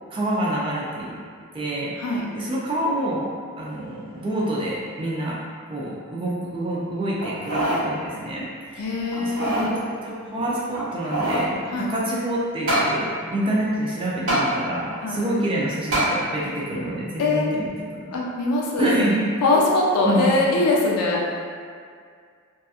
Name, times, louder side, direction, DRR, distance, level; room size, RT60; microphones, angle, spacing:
voice 1, 0.1-1.1 1.5-3.3 3.6-5.4 5.7-8.8 9.2-18.1 18.8-19.2 20.0-20.5, right 1 dB, 25° right, -5 dB, 0.4 m, -27 dB
sound 1, 7.2-7.8 8.3-8.4 9.1-9.7 10.7-11.5 12.7-12.9 14.3-14.4 15.9-16.1 16.7-16.8, right 1 dB, 70° right, 1.2 m, -23 dB
voice 2, 8.8-9.7 11.7-11.9 15.0-15.2 17.2-17.5 18.1-19.0 19.4-21.2, left 2 dB, 90° left, -2 dB, 0.4 m, -22 dB
2.7 x 2.3 x 2.4 m, 2.1 s
head